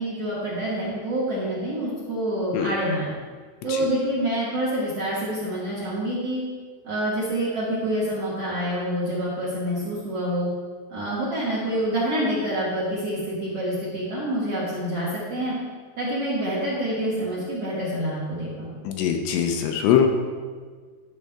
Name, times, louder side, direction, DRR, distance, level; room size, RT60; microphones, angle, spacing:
voice 1, 0.0-3.1 3.6-6.4 6.8-10.5 10.9-15.5 16.0-18.7, right 1 dB, 50° right, -8 dB, 2.0 m, -27 dB
voice 2, 18.8-20.1, left 9 dB, 80° left, 4 dB, 2.8 m, -22 dB
12.5 x 6.7 x 3.6 m, 1.5 s
omnidirectional pair, 5.2 m